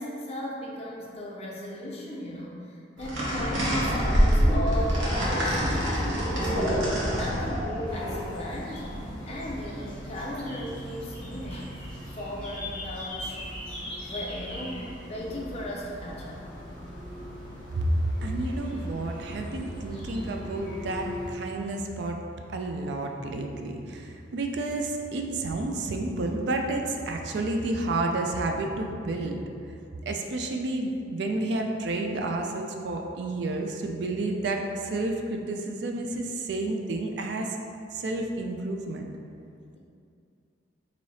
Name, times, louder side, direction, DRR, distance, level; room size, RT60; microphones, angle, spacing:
voice 1, 0.0-8.8 9.3-16.4, left 1 dB, 35° left, -3 dB, 0.5 m, -37 dB
sound 1, 3.0-9.1, equal, 80° right, 0.9 m, -26 dB
sound 2, 7.8-21.3, equal, 5° left, 1.0 m, -40 dB
voice 2, 17.8-22.2 22.5-29.4 30.1-37.5 37.9-39.1, right 2 dB, 60° right, 3 dB, 0.3 m, -30 dB
3.2 x 2.7 x 4.1 m, 2.4 s
head